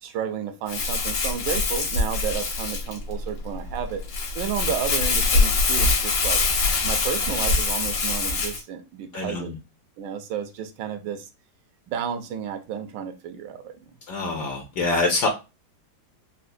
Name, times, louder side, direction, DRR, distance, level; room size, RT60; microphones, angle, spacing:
voice 1, 0.0-4.0 4.3-6.4 6.8-9.5 10.0-11.3 11.9-13.9, right 8 dB, 80° right, 1.2 m, -32 dB
Crumpling crinkling, 0.7-8.6, left 3 dB, 90° left, 1.7 m, -24 dB
voice 2, 9.1-9.5 14.1-15.3, left 3 dB, 70° left, 1.2 m, -25 dB
4.3 x 2.0 x 2.6 m
omnidirectional pair, 2.0 m